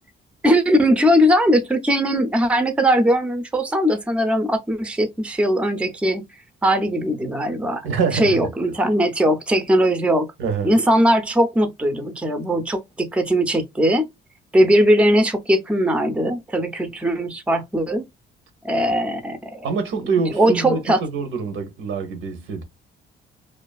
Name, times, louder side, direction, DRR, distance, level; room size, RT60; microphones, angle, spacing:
voice 1, 0.4-6.2 6.6-7.9 8.1-10.3 10.6-14.1 14.5-18.0 18.6-19.7 20.3-21.0, equal, 5° right, 0.4 m, -19 dB
voice 2, 7.8-8.5 10.4-10.8 19.6-22.6, right 5 dB, 80° right, 0.7 m, -25 dB
2.4 x 2.3 x 2.3 m
cardioid pair, 90°, 20 cm